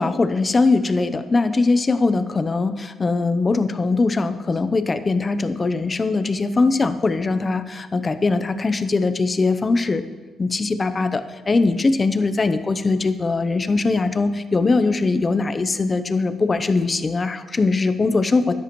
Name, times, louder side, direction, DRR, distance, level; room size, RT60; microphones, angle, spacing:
voice 1, 0.0-10.0 10.4-18.5, left 3 dB, 30° left, 11 dB, 0.7 m, -21 dB
13.5 x 10.5 x 3.1 m, 1.3 s
cardioid pair, 90°, 0 cm